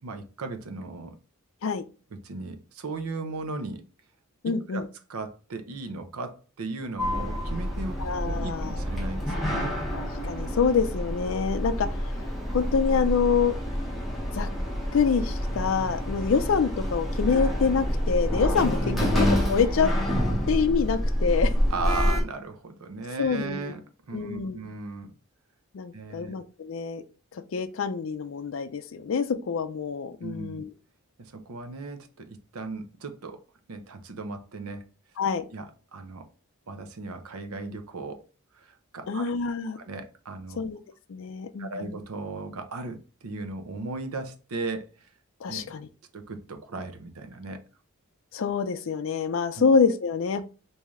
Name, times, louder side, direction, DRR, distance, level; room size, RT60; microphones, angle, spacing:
voice 1, 0.0-1.2 2.1-3.8 4.7-4.8 5.1-9.8 18.6-19.1 21.7-23.8 24.1-25.1 25.9-26.3 30.2-30.6 31.2-33.4 33.7-34.9 35.5-36.2 36.7-38.2 38.5-39.2 39.8-40.6 41.6-45.1 45.5-45.7 46.1-47.6 49.6-49.7, right 3 dB, 80° right, 0.6 m, -36 dB
voice 2, 4.4-4.8 8.0-8.7 9.9-11.9 12.5-13.5 14.3-14.5 14.9-18.8 19.1-19.9 20.5-21.5 23.2-23.7 24.1-24.6 25.7-27.0 27.5-30.7 35.2-35.4 39.1-39.8 40.6-40.8 41.1-42.0 45.4-45.9 48.3-50.4, left 5 dB, 65° left, 0.4 m, -26 dB
Sliding door, 7.0-22.2, equal, ahead, 0.7 m, -28 dB
3.1 x 2.7 x 3.5 m
head